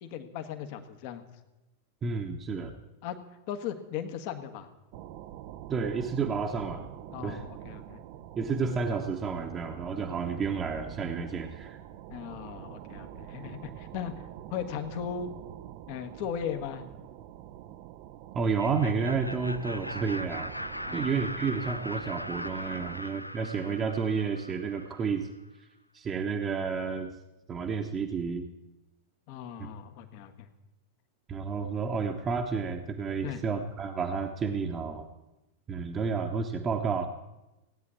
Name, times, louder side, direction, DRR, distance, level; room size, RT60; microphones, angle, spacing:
voice 1, 0.0-1.2 3.0-3.2 3.5-4.7 7.1-8.0 12.1-15.3 15.9-16.8 20.9-21.2 29.3-30.5 33.2-33.4, left 8 dB, 45° left, 8 dB, 1.3 m, -37 dB
voice 2, 2.0-2.7 5.7-6.9 7.2-7.4 8.4-11.8 18.3-20.5 20.9-25.3 25.9-27.1 27.5-28.4 29.6-29.7 31.3-35.1 35.7-37.1, right 5 dB, 25° right, 3 dB, 1.1 m, -31 dB
sound 1, 4.9-23.0, right 12 dB, 45° right, 0.7 m, -46 dB
Laughter, 18.4-25.2, left 1 dB, 90° left, 0.5 m, -40 dB
17.0 x 9.6 x 8.4 m, 1.0 s
figure-of-eight pair, 90°, 0 cm